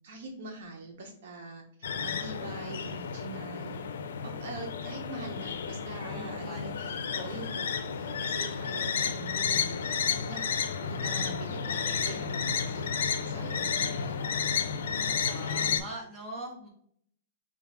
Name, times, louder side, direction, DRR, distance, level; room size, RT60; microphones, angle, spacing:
voice 1, 0.0-1.6 2.0-3.8 4.2-10.5 10.8-14.4, right 2 dB, 60° right, 2 dB, 0.9 m, -43 dB
sound 1, 1.8-15.8, left 6 dB, 80° left, 0.5 m, -32 dB
voice 2, 6.1-7.0 13.9-14.2 15.2-16.7, right 1 dB, 15° right, -3 dB, 1.3 m, -43 dB
4.9 x 2.4 x 3.4 m, 0.64 s
hypercardioid pair, 155°, 0 cm